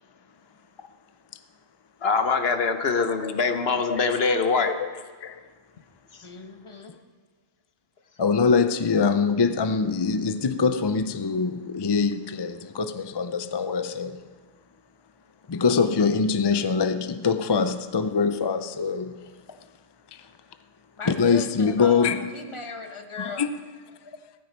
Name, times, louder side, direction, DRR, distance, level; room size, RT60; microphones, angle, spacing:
voice 1, 2.0-4.7, left 4 dB, 60° left, 1.1 m, -23 dB
voice 2, 6.2-6.9 21.0-23.5, left 3 dB, 25° left, 1.2 m, -38 dB
voice 3, 8.2-14.2 15.5-19.3 20.1-20.3 21.1-22.3 23.2-23.5, left 5 dB, 45° left, 0.3 m, -24 dB
16.5 x 14.5 x 4.5 m
omnidirectional pair, 1.2 m